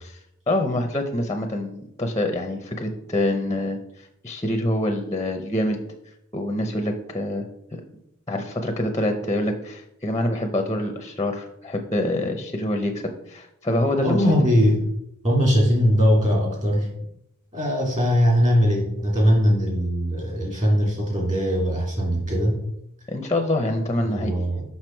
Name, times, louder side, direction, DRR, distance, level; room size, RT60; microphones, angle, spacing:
voice 1, 0.5-3.8 4.2-5.8 6.3-7.4 8.3-14.2 23.1-24.3, left 1 dB, 15° left, 5 dB, 0.6 m, -25 dB
voice 2, 14.0-14.9 15.2-16.9 17.5-22.6 24.0-24.6, equal, 35° right, -1 dB, 2.7 m, -20 dB
6.1 x 5.6 x 4.5 m, 0.79 s
head